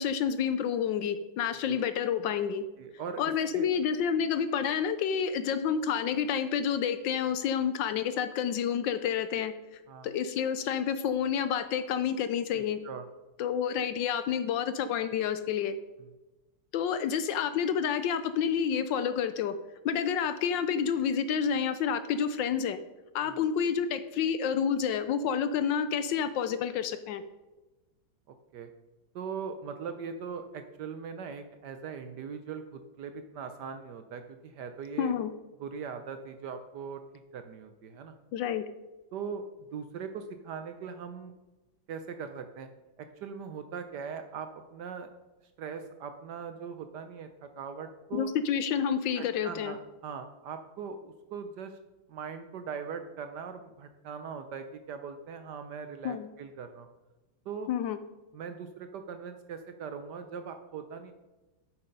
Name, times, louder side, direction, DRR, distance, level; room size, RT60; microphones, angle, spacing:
voice 1, 0.0-2.6 3.2-9.5 10.0-12.8 13.4-15.7 16.7-19.5 19.8-22.8 23.1-27.2 35.0-35.3 38.3-38.6 48.1-49.7 56.0-56.3 57.7-58.0, left 7 dB, 75° left, 11 dB, 1.2 m, -29 dB
voice 2, 2.8-3.2 3.5-3.7 9.9-10.1 12.5-13.1 16.0-16.1 23.2-23.4 28.5-28.7 29.1-35.1 35.6-37.0 37.3-38.2 39.1-39.4 39.7-41.3 41.9-42.7 43.0-45.1 45.6-48.3 49.1-51.8 52.1-56.9 57.5-57.7 58.3-61.1, right 6 dB, 70° right, 8 dB, 1.1 m, -40 dB
8.5 x 7.2 x 5.2 m, 1.1 s
omnidirectional pair, 2.3 m